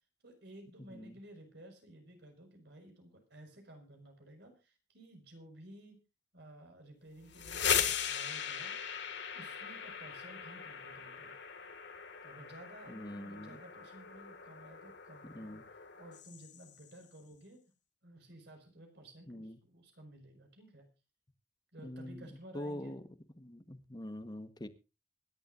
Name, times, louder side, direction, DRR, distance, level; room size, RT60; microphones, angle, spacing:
voice 1, 0.2-6.0 6.3-8.8 9.3-11.3 12.2-17.6 18.0-20.9 21.7-23.1, right 1 dB, 65° right, 5 dB, 5.4 m, -54 dB
sound 1, 7.2-16.9, left 8 dB, 65° left, 2.1 m, -39 dB
voice 2, 12.9-13.6 15.3-15.6 19.3-19.6 21.8-22.3 22.5-23.0 23.4-24.7, left 1 dB, 25° left, 10 dB, 1.3 m, -44 dB
25.0 x 11.5 x 2.6 m, 0.30 s
head